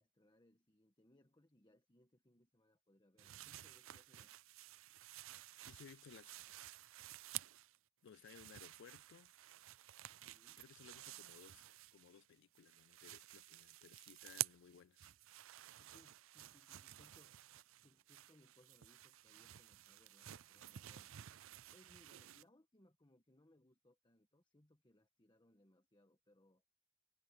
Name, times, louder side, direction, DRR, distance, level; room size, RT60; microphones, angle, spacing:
voice 1, 0.0-4.3 10.3-11.2 15.8-17.4 17.8-21.1 21.7-26.6, left 1 dB, 20° left, 1.4 m, -71 dB
sound 1, 3.2-7.8 8.1-12.3 12.5-22.4, right 15 dB, 65° right, 0.5 m, -52 dB
voice 2, 5.7-6.4 8.0-9.3 10.6-11.6 11.9-15.1, left 7 dB, 55° left, 0.3 m, -61 dB
head